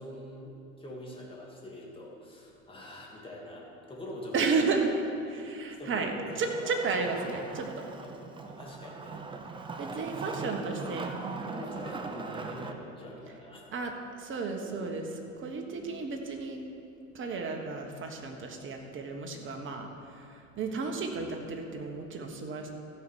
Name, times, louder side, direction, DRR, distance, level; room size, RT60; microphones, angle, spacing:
voice 1, 0.0-4.6 5.8-6.7 7.1-7.2 7.9-9.2 9.9-11.0 11.5-13.7 14.6-14.8 15.7-15.9 19.3-19.6, left 1 dB, 15° left, -3 dB, 2.5 m, -44 dB
voice 2, 4.3-4.9 5.3-7.8 9.8-11.1 11.5-11.9 13.7-13.9 14.2-15.1 15.4-16.6 17.1-22.7, right 4 dB, 30° right, 3 dB, 1.5 m, -33 dB
Wood, 6.3-12.7, right 4 dB, 10° right, 0.6 m, -40 dB
13.5 x 5.7 x 6.4 m, 2.7 s
figure-of-eight pair, 80°, 41 cm